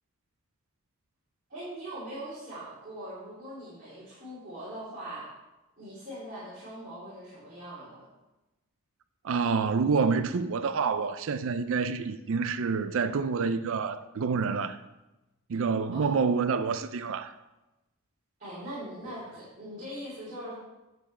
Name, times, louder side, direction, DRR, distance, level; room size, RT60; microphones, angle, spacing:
voice 1, 1.5-5.3 5.8-8.1 15.9-16.1 18.4-20.6, right 1 dB, 40° right, 3.3 m, -41 dB
voice 2, 9.2-14.8 15.5-17.3, right 5 dB, 60° right, 0.4 m, -28 dB
9.3 x 7.2 x 4.3 m
head